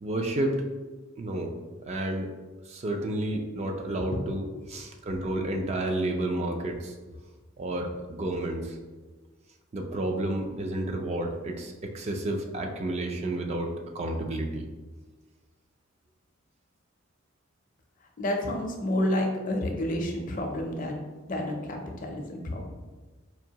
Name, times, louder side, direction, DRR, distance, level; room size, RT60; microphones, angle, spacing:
voice 1, 0.0-0.6 1.2-1.5 1.9-2.3 2.7-6.9 7.6-8.8 9.7-14.6, right 1 dB, 30° right, 2 dB, 0.4 m, -31 dB
voice 2, 18.2-20.9 21.3-22.7, left 1 dB, 40° left, 2 dB, 0.5 m, -29 dB
4.5 x 2.6 x 2.8 m, 1.3 s
head